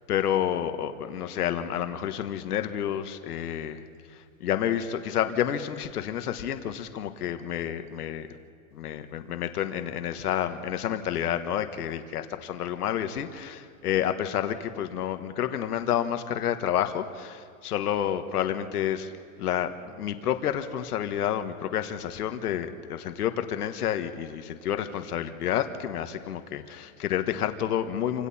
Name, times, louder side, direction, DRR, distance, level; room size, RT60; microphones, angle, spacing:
voice 1, 0.1-3.8 4.1-8.3 8.7-19.1 19.4-28.3, left 10 dB, 85° left, 8 dB, 1.6 m, -29 dB
28.5 x 26.0 x 4.3 m, 2.2 s
supercardioid pair, 180°, 45 cm